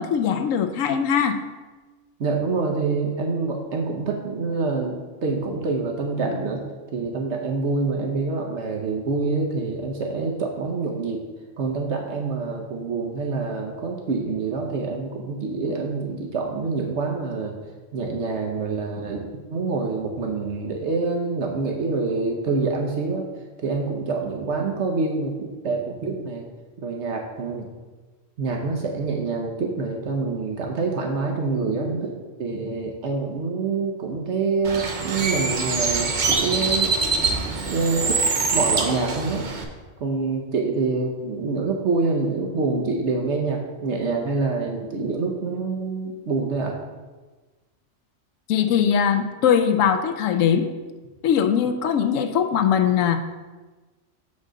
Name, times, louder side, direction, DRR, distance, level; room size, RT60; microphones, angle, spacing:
voice 1, 0.0-1.4 48.5-50.7 51.2-53.2, left 8 dB, 85° left, 8 dB, 1.0 m, -21 dB
voice 2, 2.2-6.6 6.9-11.3 11.6-17.6 17.9-23.2 23.6-26.4 26.8-27.7 28.4-32.1 32.4-38.2 38.5-39.5 40.0-46.8, right 4 dB, 65° right, 1 dB, 1.1 m, -26 dB
Bird, 34.6-39.6, right 4 dB, 45° right, 0.8 m, -24 dB
7.4 x 3.8 x 6.2 m, 1.3 s
omnidirectional pair, 1.3 m